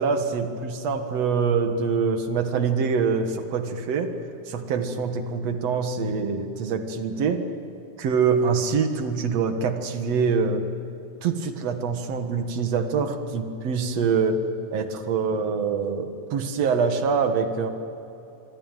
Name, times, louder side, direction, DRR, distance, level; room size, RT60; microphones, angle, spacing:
voice 1, 0.0-4.1 4.5-7.4 8.0-10.7 11.2-14.4 14.7-17.7, right 5 dB, 60° right, 7 dB, 2.6 m, -25 dB
25.5 x 24.0 x 9.1 m, 3.0 s
omnidirectional pair, 3.5 m